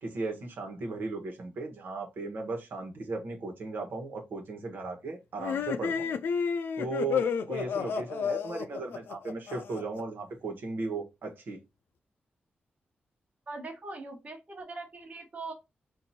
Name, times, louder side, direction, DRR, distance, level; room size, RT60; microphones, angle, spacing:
voice 1, 0.0-6.1 6.8-11.6, right 3 dB, 75° right, 1.2 m, -36 dB
sound 1, 5.4-10.0, left 6 dB, 90° left, 0.4 m, -31 dB
voice 2, 13.5-15.5, right 3 dB, 40° right, 1.2 m, -41 dB
4.5 x 2.6 x 4.1 m
wide cardioid pair, 110°, 4 cm